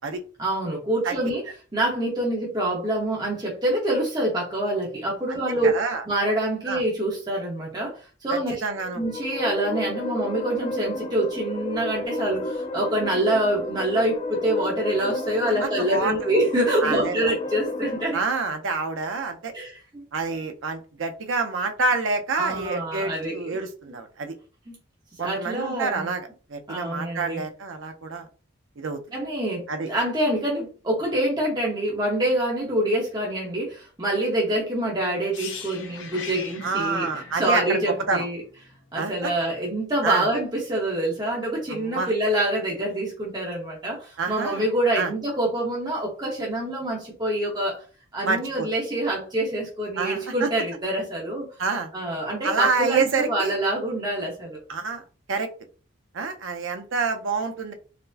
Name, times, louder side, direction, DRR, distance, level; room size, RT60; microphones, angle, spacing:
voice 1, 0.4-1.4 1.7-5.8 6.1-8.6 9.0-18.2 19.5-20.0 22.3-23.6 23.9-24.0 24.7-24.8 25.1-26.1 26.7-27.4 29.1-38.4 38.9-47.8 48.1-51.5 51.9-54.6, right 1 dB, 20° right, -4 dB, 0.8 m, -26 dB
voice 2, 5.3-6.0 6.7-6.8 8.3-9.0 15.6-16.3 16.8-17.1 18.1-19.5 20.1-24.3 25.2-28.3 28.8-29.0 29.7-29.9 36.6-38.3 38.9-39.3 40.0-40.3 41.7-42.1 44.2-44.6 44.9-45.1 48.2-48.7 50.0-50.5 51.6-51.9 52.4-53.5 54.7-55.0 55.3-55.5 56.1-57.7, right 4 dB, 70° right, 7 dB, 0.6 m, -27 dB
sound 1, 8.6-18.0, left 2 dB, 30° left, 0.3 m, -32 dB
sound 2, 35.3-39.2 39.4-39.6, left 5 dB, 65° left, 0.8 m, -40 dB
4.2 x 2.1 x 2.6 m, 0.37 s
head